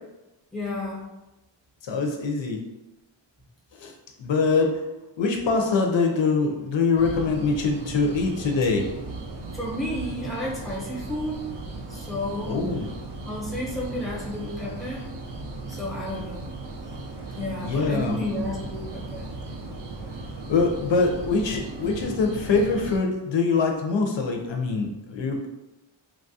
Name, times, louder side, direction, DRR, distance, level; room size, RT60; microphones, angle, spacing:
voice 1, 0.5-1.0 9.5-11.4 11.9-12.5 13.2-15.0 15.7-16.5 17.4-19.2, left 1 dB, ahead, -4 dB, 0.7 m, -31 dB
voice 2, 1.8-2.6 3.8-3.9 4.2-4.7 5.2-8.9 12.5-12.9 17.6-18.2 20.5-25.5, left 4 dB, 70° left, 2 dB, 0.5 m, -24 dB
sound 1, 6.9-23.0, right 2 dB, 60° right, 0.6 m, -37 dB
3.0 x 2.3 x 2.6 m, 1.0 s
wide cardioid pair, 125°, 48 cm